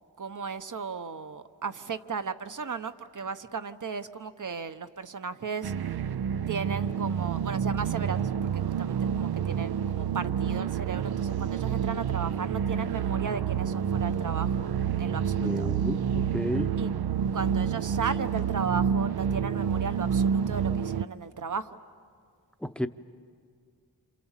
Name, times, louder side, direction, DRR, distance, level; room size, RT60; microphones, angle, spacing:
voice 1, 0.2-5.7 6.5-15.7 16.8-16.9 17.3-21.8, right 5 dB, 50° right, 10 dB, 1.0 m, -35 dB
sound 1, 5.6-21.0, right 7 dB, 70° right, 0.6 m, -28 dB
voice 2, 15.4-16.8 22.6-22.9, left 1 dB, 5° left, 9 dB, 0.8 m, -32 dB
28.0 x 28.0 x 7.4 m, 2.1 s
wide cardioid pair, 95°, 39 cm